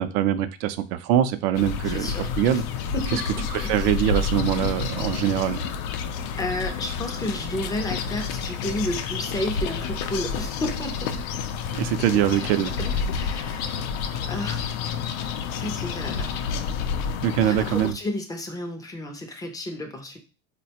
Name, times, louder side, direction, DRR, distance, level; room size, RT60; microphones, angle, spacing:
voice 1, 0.0-2.6 3.1-3.2 3.5-5.6 11.7-12.7 17.2-18.0, right 11 dB, 60° right, 11 dB, 0.5 m, -23 dB
sound 1, 1.5-17.9, left 6 dB, 85° left, 0.5 m, -29 dB
voice 2, 1.9-2.3 2.5-2.6 2.9-3.7 6.4-11.2 12.3-13.7 14.3-14.6 15.6-16.3 17.4-20.2, left 1 dB, 10° left, 4 dB, 0.4 m, -32 dB
4.0 x 2.2 x 2.8 m, 0.33 s
supercardioid pair, 125°, 41 cm